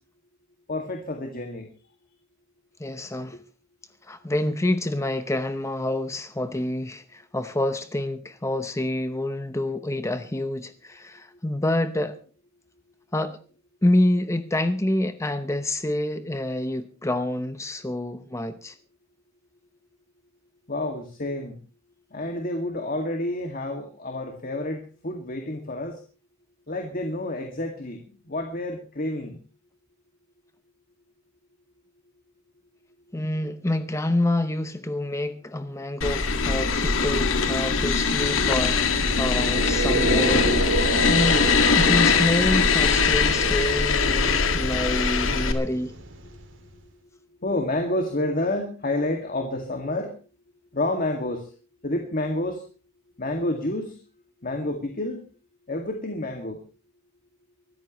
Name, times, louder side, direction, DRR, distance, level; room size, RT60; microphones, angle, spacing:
voice 1, 0.7-1.7 20.7-21.6 22.1-26.0 26.7-29.4 47.4-50.2 50.7-51.5 51.8-52.6 53.2-54.0 54.4-55.2 55.7-56.6, left 1 dB, 45° left, 2.1 m, -29 dB
voice 2, 2.8-3.4 4.0-12.2 13.1-13.4 13.8-18.8 33.1-38.8 39.2-40.5 41.1-41.5 41.7-45.9, left 1 dB, 15° left, 0.8 m, -27 dB
sound 1, 36.0-45.5, left 5 dB, 85° left, 2.0 m, -22 dB
sound 2, 38.7-46.7, right 2 dB, 65° right, 3.1 m, -30 dB
24.5 x 14.0 x 3.1 m
head